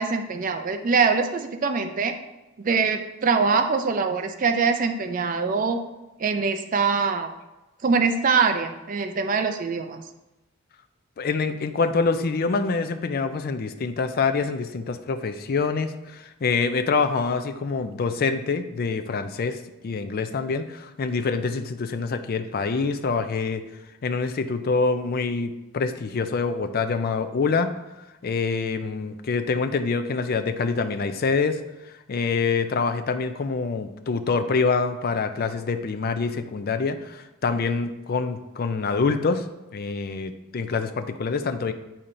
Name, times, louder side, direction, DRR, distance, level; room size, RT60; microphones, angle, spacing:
voice 1, 0.0-2.1 2.6-5.8 6.2-7.3 7.8-10.0, right 5 dB, 40° right, 7 dB, 0.4 m, -23 dB
voice 2, 11.2-23.6 24.0-27.7 28.2-31.6 32.1-39.4 39.7-41.7, left 4 dB, 45° left, 8 dB, 0.4 m, -26 dB
8.5 x 4.2 x 2.6 m, 1.0 s
head